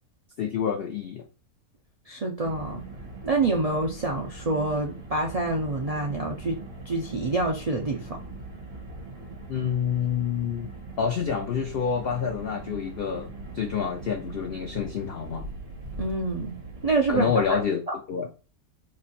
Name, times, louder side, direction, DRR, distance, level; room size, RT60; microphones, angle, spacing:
voice 1, 0.4-1.2 9.5-10.7 11.0-15.5 17.1-17.8 18.1-18.3, left 7 dB, 85° left, 0.5 m, -28 dB
voice 2, 2.1-2.9 3.2-6.6 6.9-8.1 16.0-17.6, right 3 dB, 65° right, 0.3 m, -27 dB
Car, 2.4-17.6, right 2 dB, 45° right, 1.2 m, -41 dB
3.2 x 2.5 x 3.9 m
omnidirectional pair, 1.6 m